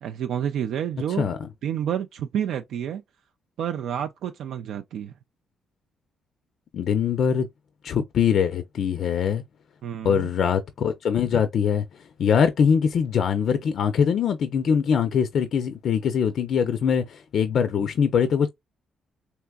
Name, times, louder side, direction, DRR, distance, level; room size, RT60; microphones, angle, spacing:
voice 1, 0.0-1.3 1.6-3.0 3.6-5.1 9.8-10.3, right 9 dB, 75° right, 0.3 m, -29 dB
voice 2, 1.2-1.5 6.7-7.5 7.8-9.4 10.0-11.8 12.2-18.5, left 7 dB, 65° left, 0.4 m, -22 dB
3.4 x 2.9 x 2.2 m
cardioid pair, 90°, 0 cm